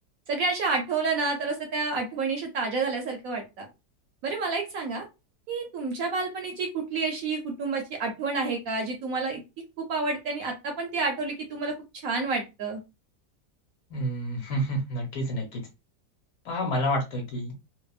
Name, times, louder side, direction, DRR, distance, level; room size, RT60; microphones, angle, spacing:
voice 1, 0.3-3.7 4.2-5.0 5.5-9.4 9.8-11.7 12.0-12.8, right 3 dB, 70° right, 2 dB, 0.9 m, -29 dB
voice 2, 13.9-15.6 16.5-17.5, equal, 65° left, 1 dB, 1.1 m, -29 dB
2.7 x 2.2 x 2.3 m, 0.25 s
omnidirectional pair, 1.8 m